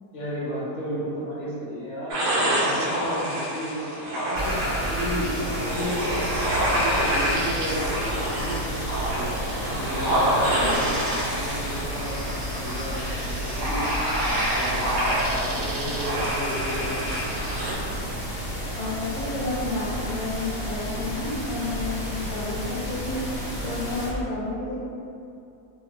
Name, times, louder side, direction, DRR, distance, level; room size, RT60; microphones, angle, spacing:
voice 1, 0.1-6.2 6.5-9.3 9.7-13.8 14.2-17.1, equal, 50° left, -8 dB, 1.0 m, -33 dB
sound 1, 2.1-17.7, right 1 dB, 65° right, 0.7 m, -27 dB
sound 2, 4.3-24.1, equal, 20° left, 1.0 m, -32 dB
voice 2, 18.8-23.2 23.6-24.8, left 3 dB, 65° left, -8 dB, 1.4 m, -31 dB
2.9 x 2.3 x 3.4 m, 2.7 s
omnidirectional pair, 1.8 m